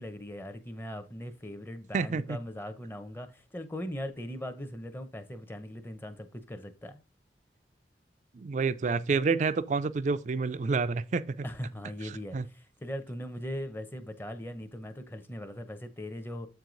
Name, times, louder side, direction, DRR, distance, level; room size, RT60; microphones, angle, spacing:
voice 1, 0.0-7.0 11.4-16.5, equal, 10° left, 0.7 m, -40 dB
voice 2, 1.9-2.4 8.3-11.3 12.3-12.4, right 4 dB, 40° right, 0.4 m, -28 dB
7.6 x 4.7 x 3.8 m
head